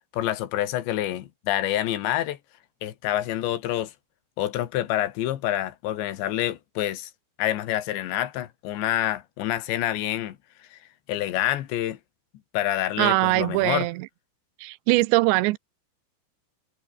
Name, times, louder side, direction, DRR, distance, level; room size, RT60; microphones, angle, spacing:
voice 1, 0.1-2.4 2.8-3.9 4.4-7.1 7.4-10.8 11.1-12.0 12.5-13.9, left 13 dB, 80° left, 3.9 m, -27 dB
voice 2, 13.0-14.1 14.6-15.6, right 21 dB, 90° right, 2.9 m, -22 dB
omnidirectional pair, 5.1 m